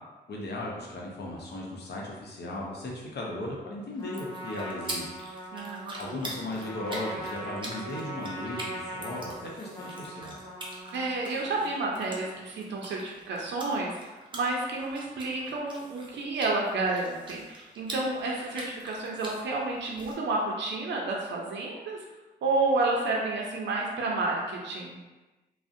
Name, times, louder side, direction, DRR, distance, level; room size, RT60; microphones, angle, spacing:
voice 1, 0.3-5.1 6.0-10.4, left 1 dB, 65° left, -3 dB, 0.7 m, -36 dB
Trumpet, 4.0-12.7, right 1 dB, 25° left, 0.7 m, -41 dB
Chewing Gum, 4.0-20.1, right 1 dB, 25° right, 0.6 m, -44 dB
voice 2, 5.5-6.2 10.9-13.9 14.3-22.0 22.4-25.0, right 3 dB, 80° right, -2 dB, 0.4 m, -30 dB
2.5 x 2.0 x 2.5 m, 1.2 s
cardioid pair, 65°, 18 cm